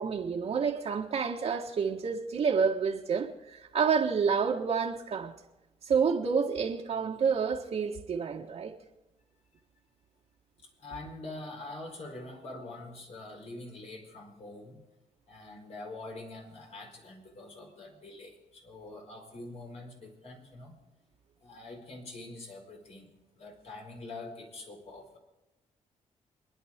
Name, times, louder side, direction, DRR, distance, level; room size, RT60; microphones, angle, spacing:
voice 1, 0.0-5.3 5.8-8.7, right 6 dB, 60° right, 1.5 m, -29 dB
voice 2, 10.8-14.8 15.3-20.8 21.4-25.2, left 2 dB, 60° left, 4.5 m, -45 dB
27.5 x 10.5 x 3.7 m
cardioid pair, 85°, 12 cm